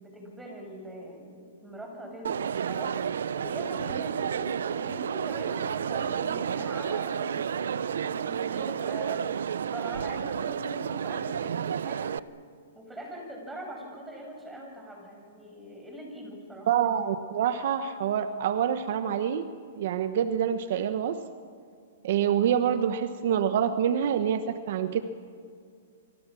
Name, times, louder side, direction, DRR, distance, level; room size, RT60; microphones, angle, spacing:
voice 1, 0.0-3.0 3.4-12.1 12.8-16.7, right 1 dB, 5° right, 1 dB, 6.9 m, -42 dB
Crowd, 2.2-12.2, right 8 dB, 80° right, 0.8 m, -31 dB
voice 2, 16.7-19.4 19.8-21.2 22.0-25.0, right 9 dB, 60° right, 10 dB, 1.3 m, -26 dB
29.0 x 25.5 x 6.3 m, 2.2 s
hypercardioid pair, 150°, 0 cm